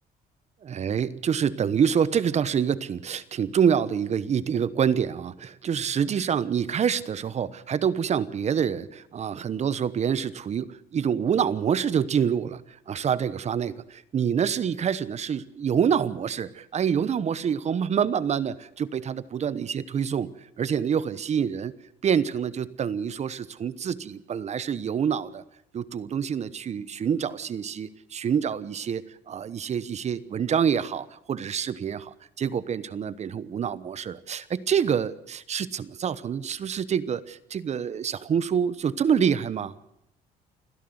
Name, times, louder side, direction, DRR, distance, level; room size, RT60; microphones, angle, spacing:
voice 1, 0.6-21.7 22.0-25.4 25.7-39.7, right 7 dB, 40° right, 17 dB, 1.0 m, -26 dB
29.5 x 11.0 x 8.0 m, 0.79 s
cardioid pair, 110°, 17 cm